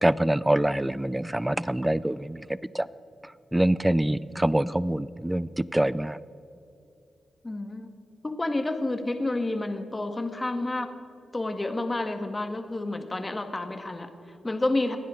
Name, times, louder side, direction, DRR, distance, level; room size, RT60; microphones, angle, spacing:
voice 1, 0.0-2.9 3.5-6.2, right 1 dB, 10° right, 18 dB, 0.5 m, -25 dB
voice 2, 7.4-7.9 8.2-10.9 11.3-15.0, left 2 dB, 25° left, 7 dB, 1.7 m, -30 dB
27.5 x 10.0 x 3.9 m, 2.7 s
cardioid pair, 65°, 0 cm